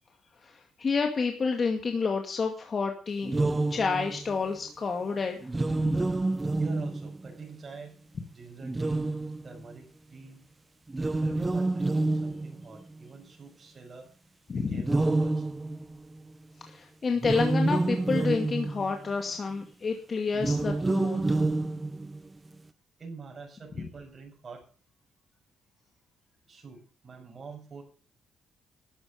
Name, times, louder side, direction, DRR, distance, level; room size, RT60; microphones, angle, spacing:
voice 1, 0.4-3.4 3.7-5.5 5.8-5.9 14.5-14.8 16.7-21.2, left 4 dB, 40° left, 4 dB, 2.2 m, -29 dB
sound 1, 3.2-4.3 5.4-7.4 8.6-9.7 10.9-13.0 14.8-16.2 17.2-19.1 20.3-22.3, right 2 dB, 20° right, 0.8 m, -28 dB
voice 2, 6.6-8.0 8.3-9.1 9.4-10.5 11.2-14.1 14.5-15.5 23.0-24.6 26.5-27.8, right 4 dB, 40° right, 1 dB, 6.9 m, -46 dB
13.0 x 8.9 x 8.2 m, 0.42 s
cardioid pair, 90°, 0 cm